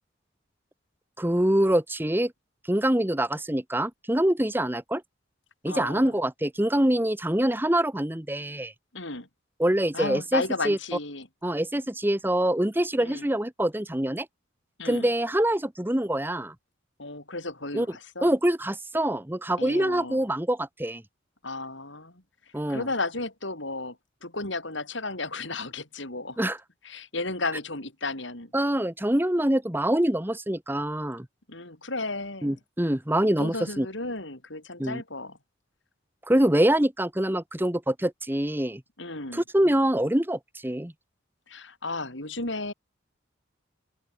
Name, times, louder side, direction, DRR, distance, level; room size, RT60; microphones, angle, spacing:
voice 1, 1.2-2.3 2.6-5.0 5.6-8.7 9.6-10.8 11.4-14.3 14.8-16.5 17.7-17.9 18.2-21.0 22.5-22.8 26.4-26.6 28.5-31.3 32.4-33.9 34.8-35.0 36.3-38.8 39.3-40.9, right 1 dB, 10° right, 1.2 m, -25 dB
voice 2, 5.7-6.1 8.9-9.3 9.9-11.3 13.0-13.3 14.8-15.1 17.0-18.3 19.6-20.2 21.4-22.2 22.7-26.4 26.8-28.5 31.5-32.5 33.2-35.4 39.0-39.4 41.5-42.7, left 2 dB, 65° left, 7.9 m, -34 dB
open air
head